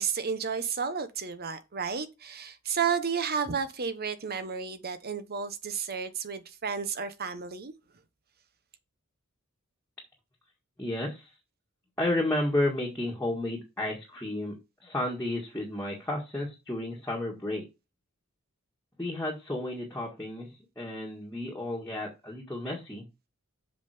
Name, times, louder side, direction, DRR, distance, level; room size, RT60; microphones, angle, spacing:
voice 1, 0.0-7.7, right 6 dB, 45° right, 1.0 m, -32 dB
voice 2, 10.8-11.3 12.0-14.5 14.8-17.6 19.0-23.0, left 1 dB, 10° left, 1.8 m, -32 dB
7.3 x 5.5 x 5.0 m
head